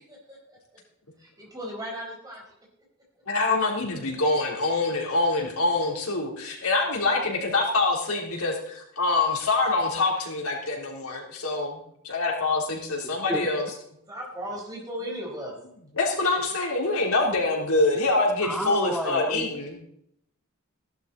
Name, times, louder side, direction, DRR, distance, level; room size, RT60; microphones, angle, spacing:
voice 1, 0.1-0.6 1.2-2.4 14.1-15.5 16.3-16.4 16.7-17.3, equal, 15° right, -2 dB, 4.5 m, -37 dB
voice 2, 3.3-11.8 12.0-13.6 16.0-19.8, left 3 dB, 90° left, -1 dB, 3.6 m, -25 dB
voice 3, 18.4-19.5, equal, ahead, 4 dB, 0.5 m, -31 dB
15.5 x 11.5 x 4.1 m, 0.73 s
head